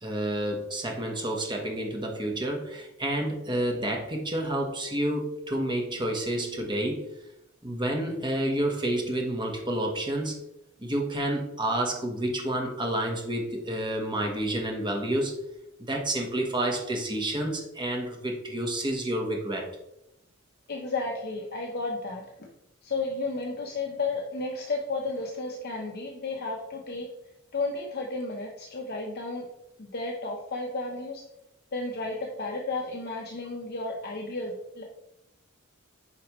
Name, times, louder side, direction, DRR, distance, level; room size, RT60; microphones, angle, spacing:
voice 1, 0.0-7.0 7.6-10.4 10.8-15.3 15.8-19.7, right 1 dB, 20° right, 1 dB, 1.2 m, -29 dB
voice 2, 20.7-22.2 22.8-27.1 27.5-29.5 29.8-31.2 31.7-34.8, left 3 dB, 50° left, -1 dB, 0.8 m, -33 dB
8.2 x 5.1 x 3.1 m, 0.85 s
head